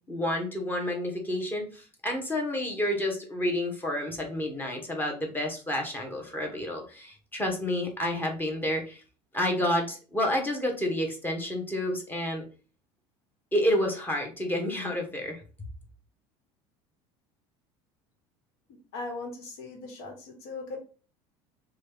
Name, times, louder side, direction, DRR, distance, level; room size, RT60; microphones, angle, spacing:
voice 1, 0.1-9.0 9.3-12.4 13.5-15.4, left 1 dB, 15° left, 1 dB, 1.0 m, -29 dB
voice 2, 18.9-20.8, left 3 dB, 80° left, 3 dB, 1.2 m, -38 dB
2.9 x 2.3 x 3.4 m, 0.36 s
supercardioid pair, 105°, 13 cm